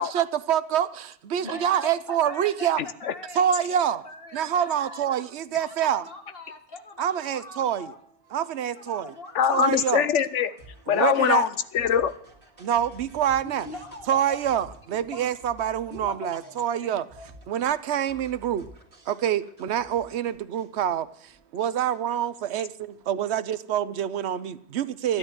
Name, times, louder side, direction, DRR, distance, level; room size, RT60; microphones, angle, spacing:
voice 1, 0.0-2.8 3.3-4.0 4.3-6.0 7.0-7.9 8.3-9.1 9.5-10.1 10.9-11.5 12.6-13.7 14.1-17.0 17.5-18.6 19.1-25.2, right 10 dB, 70° right, 14 dB, 1.0 m, -26 dB
voice 2, 1.4-5.1 5.5-8.0 8.8-9.6 13.4-14.4 15.0-15.3 15.9-16.9 17.2-17.3, left 2 dB, 55° left, 4 dB, 2.3 m, -42 dB
voice 3, 2.8-3.1 9.3-10.5 10.9-12.1 25.1-25.2, left 9 dB, 80° left, 14 dB, 1.1 m, -23 dB
sound 1, 7.9-23.4, right 1 dB, 50° right, 2.4 m, -53 dB
13.0 x 11.0 x 7.9 m, 0.66 s
omnidirectional pair, 1.2 m